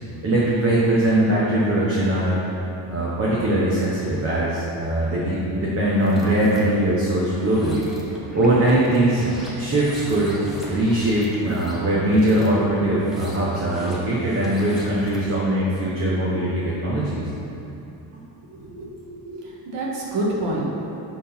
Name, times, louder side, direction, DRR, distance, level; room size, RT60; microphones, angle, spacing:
voice 1, 0.2-2.4 2.9-7.8 8.3-9.3 9.6-10.4 10.7-17.2, right 1 dB, 30° right, -7 dB, 1.1 m, -21 dB
sound 1, 5.9-6.6 7.3-15.3, equal, ahead, 1.1 m, -40 dB
voice 2, 18.5-20.7, right 1 dB, 80° right, -4 dB, 1.6 m, -28 dB
6.6 x 3.8 x 5.6 m, 2.9 s
cardioid pair, 140°, 43 cm